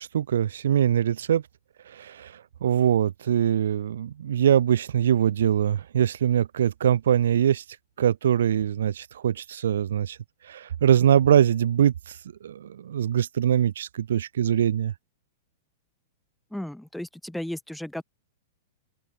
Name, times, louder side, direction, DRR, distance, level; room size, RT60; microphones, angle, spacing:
voice 1, 0.0-1.4 1.9-7.6 8.0-10.2 10.5-12.2 12.4-14.9, right 9 dB, 75° right, 0.3 m, -23 dB
voice 2, 16.5-18.0, left 1 dB, ahead, 0.3 m, -34 dB
open air
hypercardioid pair, 115°, 0 cm